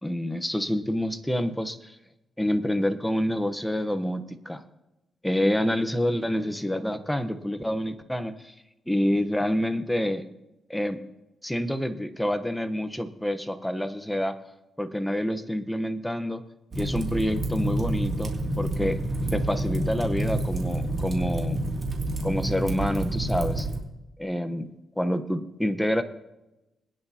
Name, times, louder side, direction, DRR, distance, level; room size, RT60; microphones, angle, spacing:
voice 1, 0.0-2.0 2.4-4.6 5.2-8.5 8.9-10.2 10.7-11.0 11.4-14.4 14.8-16.4 16.7-19.0 19.3-21.6 22.2-23.7 24.2-24.7 25.0-26.0, equal, 5° left, 9 dB, 1.0 m, -27 dB
Fire, 16.7-23.8, right 1 dB, 35° right, 2.7 m, -28 dB
21.5 x 10.5 x 2.9 m, 0.96 s
cardioid pair, 95°, 0 cm